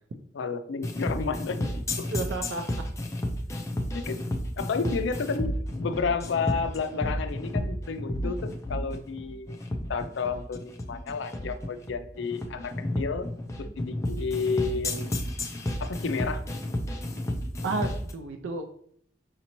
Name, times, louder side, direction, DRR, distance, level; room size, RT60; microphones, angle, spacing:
voice 1, 0.3-1.7 2.0-2.1 3.9-4.2 4.6-9.6 9.9-13.3 13.8-15.1 15.8-16.4, left 5 dB, 75° left, 9 dB, 0.4 m, -31 dB
sound 1, 0.8-18.1, left 1 dB, 15° left, 0.4 m, -31 dB
voice 2, 2.1-2.6 17.6-18.8, right 3 dB, 75° right, 5 dB, 0.4 m, -32 dB
5.2 x 2.8 x 2.9 m, 0.63 s
head